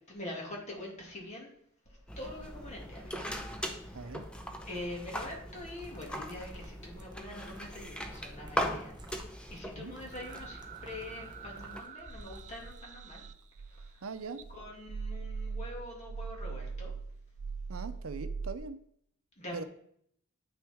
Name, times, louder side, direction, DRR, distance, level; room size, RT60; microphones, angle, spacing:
voice 1, 0.1-1.5 1.9-4.2 4.7-8.9 9.5-13.2 13.7-14.0 14.5-16.9 19.4-19.7, left 1 dB, 35° left, -1 dB, 2.2 m, -44 dB
sound 1, 2.1-11.8, equal, 5° left, 0.7 m, -40 dB
voice 2, 3.9-4.2 9.8-9.9 14.0-14.4 17.7-18.8 19.5-19.6, right 4 dB, 80° right, 10 dB, 0.6 m, -40 dB
sound 2, 4.1-13.4 13.7-14.7, right 1 dB, 20° right, 0.9 m, -54 dB
sound 3, 10.1-14.0 14.4-18.5, right 5 dB, 35° right, 0.4 m, -42 dB
9.0 x 6.2 x 3.5 m, 0.67 s
head